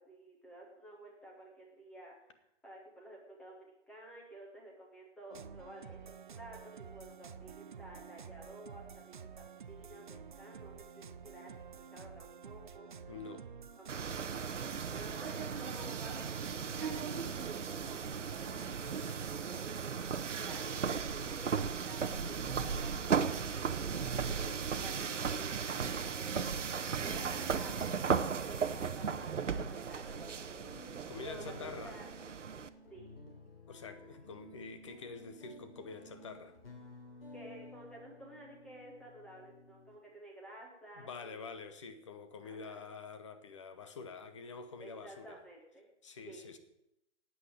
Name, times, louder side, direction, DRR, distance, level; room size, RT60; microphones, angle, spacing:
voice 1, 0.0-11.5 11.9-13.1 13.8-13.9 14.3-19.1 19.5-20.0 20.4-32.1 32.9-33.1 37.3-41.5 42.4-42.8 44.8-45.9 46.2-46.5, right 1 dB, 5° left, 1.5 m, -53 dB
sound 1, 5.3-20.4, right 6 dB, 45° right, 0.6 m, -50 dB
voice 2, 13.1-13.5 31.1-32.0 33.7-36.6 41.0-45.4 46.0-46.6, left 4 dB, 25° left, 1.0 m, -47 dB
sound 2, 13.9-32.7, right 6 dB, 85° right, 1.1 m, -36 dB
sound 3, 21.8-40.0, left 1 dB, 55° left, 3.2 m, -55 dB
9.3 x 8.8 x 9.8 m
hypercardioid pair, 165°, 36 cm